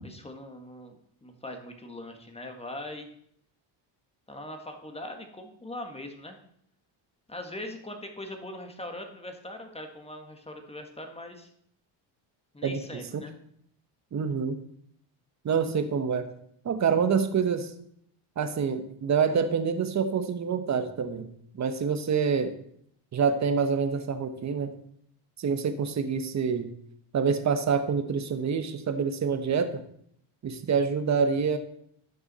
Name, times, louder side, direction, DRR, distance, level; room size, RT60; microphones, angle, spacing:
voice 1, 0.0-1.0 1.2-3.1 4.3-6.4 7.3-11.5 12.5-13.3, left 1 dB, 10° left, 4 dB, 1.6 m, -41 dB
voice 2, 12.6-13.2 14.1-14.6 15.4-16.3 16.6-17.7 18.4-22.5 23.1-24.7 25.4-26.7 27.1-29.8 30.4-31.6, right 6 dB, 35° right, 9 dB, 1.2 m, -27 dB
12.0 x 6.8 x 4.2 m, 0.67 s
cardioid pair, 100°, 49 cm